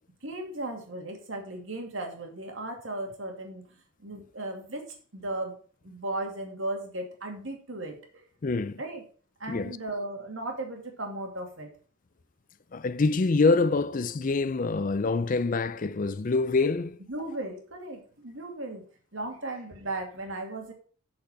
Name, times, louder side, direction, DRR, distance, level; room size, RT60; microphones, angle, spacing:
voice 1, 0.2-3.7 4.0-5.6 5.8-8.2 8.8-9.0 9.4-11.7 17.1-18.8 19.1-20.7, right 2 dB, 75° right, 2.4 m, -36 dB
voice 2, 8.4-8.8 9.5-9.8 12.7-17.0, left 3 dB, 40° left, 0.5 m, -25 dB
8.0 x 6.7 x 5.7 m
head